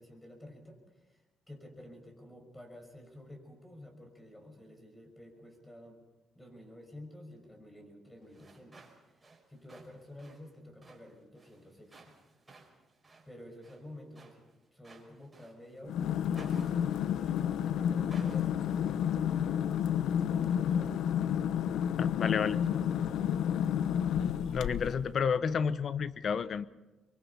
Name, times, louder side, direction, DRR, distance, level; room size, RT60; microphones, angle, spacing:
voice 1, 0.0-6.0 6.3-8.8 9.1-12.2 13.3-16.0 16.4-19.7 20.3-21.0 22.0-23.4, left 1 dB, 10° left, 4 dB, 6.1 m, -51 dB
sound 1, 8.2-15.8 16.3-17.6 18.1-18.8, right 3 dB, 20° right, 5.5 m, -57 dB
sound 2, 15.9-25.1, left 9 dB, 80° left, 0.8 m, -30 dB
voice 2, 22.0-22.6 24.5-26.7, left 6 dB, 55° left, 15 dB, 0.9 m, -30 dB
24.0 x 23.5 x 5.7 m, 1.1 s
cardioid pair, 90°, 0 cm